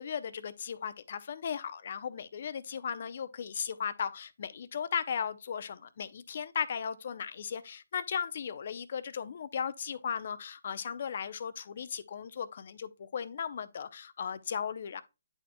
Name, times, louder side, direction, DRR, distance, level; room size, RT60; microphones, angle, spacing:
voice 1, 0.0-15.0, left 7 dB, 50° left, 0.6 m, -36 dB
9.8 x 4.2 x 2.2 m
hypercardioid pair, 155°, 0 cm